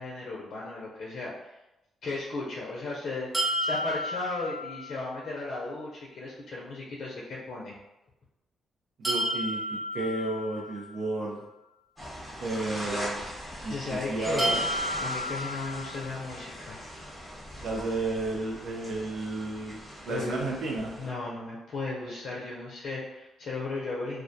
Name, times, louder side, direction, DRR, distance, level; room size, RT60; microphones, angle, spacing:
voice 1, 0.0-1.5 2.0-7.7 13.7-14.6 15.0-16.8 20.1-20.4 21.0-24.2, left 3 dB, 60° left, -5 dB, 0.5 m, -35 dB
sound 1, 3.3-5.3 9.0-11.1 14.4-16.4, equal, 20° right, 0.7 m, -32 dB
voice 2, 9.0-9.6 9.9-11.4 12.4-13.3 13.6-14.5 17.6-20.9, right 2 dB, 70° right, -4 dB, 0.4 m, -32 dB
sound 2, 12.0-21.1, equal, ahead, 1.0 m, -40 dB
2.2 x 2.1 x 2.6 m, 0.94 s
cardioid pair, 95°, 0 cm